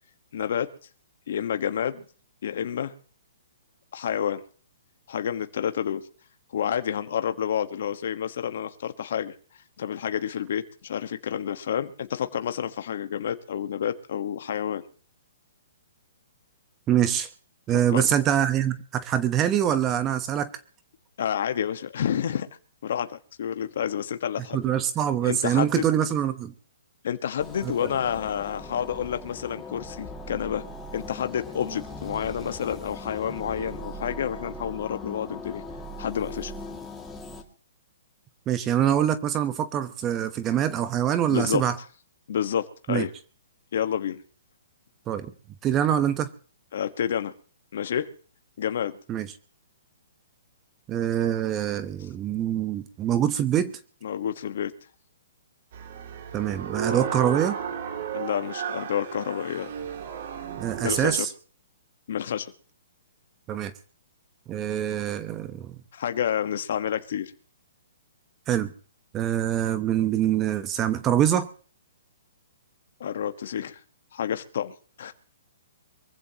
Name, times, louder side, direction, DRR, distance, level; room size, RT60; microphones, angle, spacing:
voice 1, 0.3-0.7 1.3-2.0 2.4-2.9 3.9-4.4 5.1-6.0 6.5-9.3 9.8-14.8 17.9-18.0 21.2-22.5 22.8-24.6 25.2-25.8 27.0-30.6 30.9-35.6 36.0-36.5 41.3-41.6 42.3-43.1 43.7-44.2 46.7-47.3 47.7-48.1 48.6-49.0 54.0-54.7 58.1-59.7 60.8-61.3 62.1-62.5 65.9-67.3 73.0-73.8 74.1-74.7 75.0-75.1, left 9 dB, 60° left, 9 dB, 1.3 m, -29 dB
voice 2, 16.9-17.3 17.7-20.5 24.5-26.5 27.6-27.7 38.5-41.8 42.9-43.0 45.1-45.3 45.6-46.3 49.1-49.3 50.9-53.7 56.3-57.6 60.6-61.3 63.5-63.7 64.5-65.8 68.5-68.7 69.1-71.5, right 10 dB, 20° right, 12 dB, 0.9 m, -24 dB
sound 1, 27.4-37.4, left 1 dB, 10° left, 2.2 m, -39 dB
sound 2, 55.7-61.2, right 7 dB, 55° right, 2.5 m, -33 dB
24.0 x 15.0 x 2.9 m, 0.41 s
hypercardioid pair, 145°, 0 cm